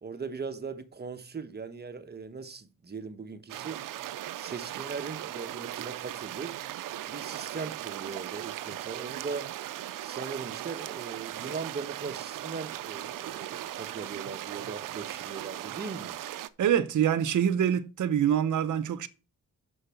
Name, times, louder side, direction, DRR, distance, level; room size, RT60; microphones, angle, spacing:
voice 1, 0.0-3.8 4.4-6.6 7.1-9.5 10.0-16.2, right 5 dB, 30° right, 1.1 m, -39 dB
sound 1, 3.5-16.5, right 13 dB, 90° right, 0.6 m, -38 dB
voice 2, 16.6-19.1, right 9 dB, 65° right, 0.8 m, -25 dB
6.5 x 6.4 x 5.8 m
cardioid pair, 80°, 32 cm